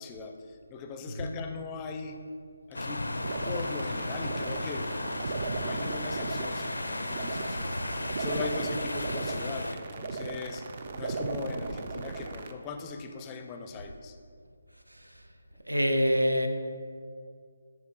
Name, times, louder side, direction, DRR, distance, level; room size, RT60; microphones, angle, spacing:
voice 1, 0.0-2.2 2.7-3.0 3.4-7.7 8.2-10.7 10.9-14.2, left 4 dB, 20° left, 5 dB, 0.4 m, -39 dB
voice 2, 1.1-1.4 7.7-7.8 14.9-15.2 15.6-16.5, equal, 85° right, 6 dB, 0.6 m, -27 dB
sound 1, 2.7-9.7, left 2 dB, 75° left, 0.5 m, -35 dB
sound 2, 3.2-12.5, right 3 dB, 40° right, 0.4 m, -37 dB
12.5 x 5.3 x 2.3 m, 2.1 s
figure-of-eight pair, 150°, 0 cm